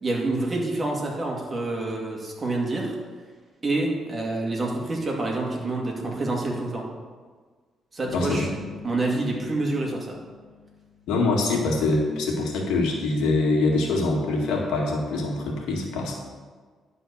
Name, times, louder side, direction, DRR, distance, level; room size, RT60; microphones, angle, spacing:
voice 1, 0.0-2.9 3.6-6.9 7.9-8.6 8.8-10.2, right 2 dB, 30° right, -1 dB, 2.2 m, -27 dB
voice 2, 8.1-8.5 11.1-16.1, left 2 dB, 90° left, 0 dB, 1.8 m, -24 dB
sound 1, 8.1-11.5, left 6 dB, 70° left, 1.7 m, -43 dB
11.0 x 4.2 x 7.0 m, 1.5 s
cardioid pair, 90°, 0 cm